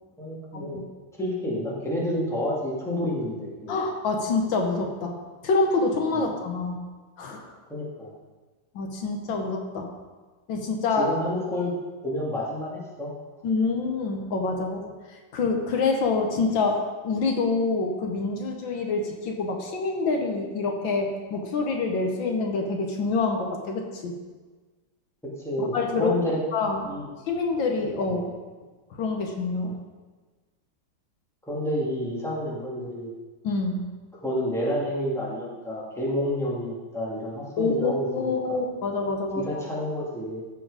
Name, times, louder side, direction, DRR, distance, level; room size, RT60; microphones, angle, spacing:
voice 1, 0.2-0.8 1.2-3.7 6.1-6.3 7.7-8.1 11.0-11.7 12.0-13.1 25.2-26.4 26.9-27.1 28.1-28.3 31.5-33.1 34.2-38.6 39.3-40.4, equal, ahead, -6 dB, 2.0 m, -29 dB
voice 2, 3.7-5.2 5.4-6.9 7.2-7.5 8.8-9.9 10.5-11.1 13.4-24.1 25.7-26.1 26.5-27.0 27.3-28.2 29.0-29.8 33.4-33.9 37.6-39.5, left 3 dB, 75° left, 2 dB, 1.8 m, -26 dB
13.5 x 4.6 x 4.9 m, 1.3 s
omnidirectional pair, 2.1 m